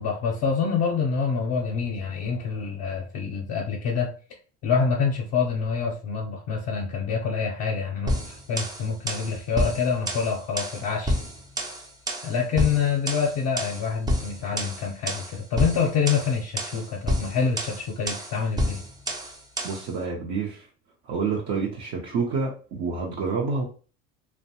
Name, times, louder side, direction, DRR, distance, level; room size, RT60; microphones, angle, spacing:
voice 1, 0.0-4.1 4.6-11.2 12.2-18.8, left 6 dB, 50° left, -1 dB, 0.6 m, -26 dB
sound 1, 8.1-19.9, equal, 10° right, 0.4 m, -30 dB
voice 2, 19.6-20.7 21.0-23.6, right 4 dB, 55° right, -2 dB, 0.6 m, -28 dB
2.6 x 2.1 x 2.7 m, 0.37 s
supercardioid pair, 95°, 34 cm